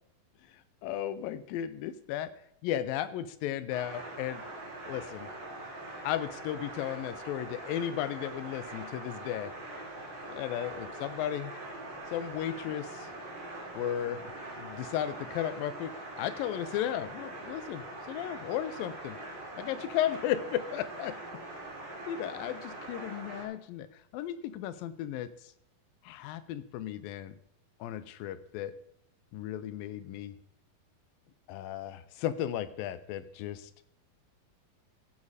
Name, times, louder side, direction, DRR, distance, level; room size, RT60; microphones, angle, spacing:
voice 1, 0.8-2.3 2.6-4.4 4.9-5.3 6.0-9.5 10.3-11.5 12.1-13.1 13.7-14.2 14.6-19.2 19.6-21.2 22.1-23.9 24.1-25.3 26.1-27.4 27.8-28.7 29.3-30.3 31.5-33.7, left 11 dB, 80° left, 14 dB, 2.4 m, -35 dB
sound 1, 3.7-23.4, right 2 dB, 30° right, 3.7 m, -43 dB
14.5 x 8.3 x 4.9 m, 0.72 s
omnidirectional pair, 4.1 m